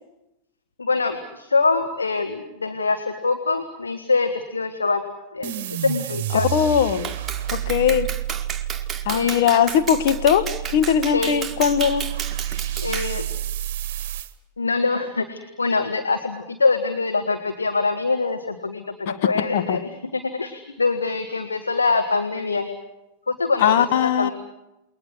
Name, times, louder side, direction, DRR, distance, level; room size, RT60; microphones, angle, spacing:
voice 1, 0.8-5.0 5.3-6.5 9.1-9.5 11.1-11.4 12.8-13.3 14.6-22.7 23.3-24.3, left 4 dB, 75° left, 1.7 m, -24 dB
sound 1, 5.4-14.3, right 12 dB, 50° right, 1.2 m, -30 dB
voice 2, 6.3-7.1 7.5-8.1 9.0-12.1 19.5-19.8 23.6-24.3, left 8 dB, 50° left, 1.3 m, -20 dB
Clapping, 7.0-13.2, right 7 dB, 15° right, 1.8 m, -32 dB
29.0 x 21.5 x 6.4 m
figure-of-eight pair, 90°, 0 cm